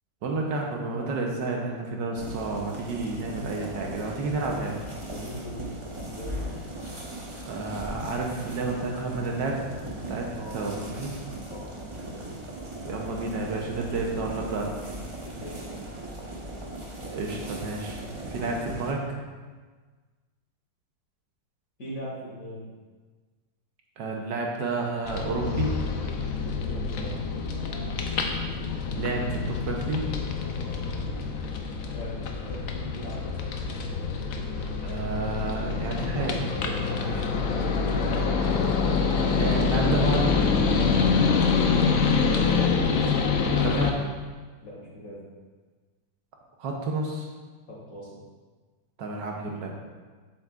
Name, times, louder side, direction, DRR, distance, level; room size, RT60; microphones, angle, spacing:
voice 1, 0.2-4.8 7.5-9.6 10.1-11.2 12.9-14.7 17.1-19.1 24.0-25.7 28.9-30.0 34.8-37.3 39.2-40.4 43.5-44.0 46.6-47.3 49.0-49.7, right 3 dB, 70° right, 0 dB, 1.4 m, -30 dB
sound 1, 2.2-18.9, right 1 dB, 50° right, 0.3 m, -38 dB
voice 2, 5.0-5.8 6.1-6.7 10.3-10.9 11.5-11.8 15.2-15.7 21.8-22.7 26.6-27.2 31.9-33.7 41.5-41.7 44.6-45.3 47.7-48.1, left 1 dB, 45° left, -5 dB, 2.3 m, -41 dB
sound 2, 25.1-43.9, left 5 dB, 65° left, 0.8 m, -26 dB
7.7 x 7.3 x 2.4 m, 1.4 s
omnidirectional pair, 2.1 m